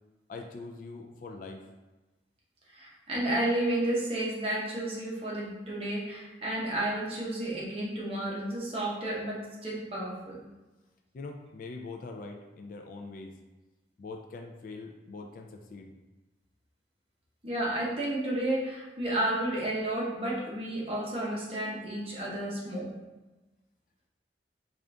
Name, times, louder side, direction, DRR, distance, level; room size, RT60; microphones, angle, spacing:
voice 1, 0.3-1.7 11.1-13.4 14.0-15.9, left 3 dB, 45° left, 3 dB, 0.3 m, -43 dB
voice 2, 2.7-10.4 17.4-22.9, right 1 dB, 30° right, -5 dB, 0.9 m, -32 dB
3.8 x 2.5 x 3.3 m, 1.1 s
head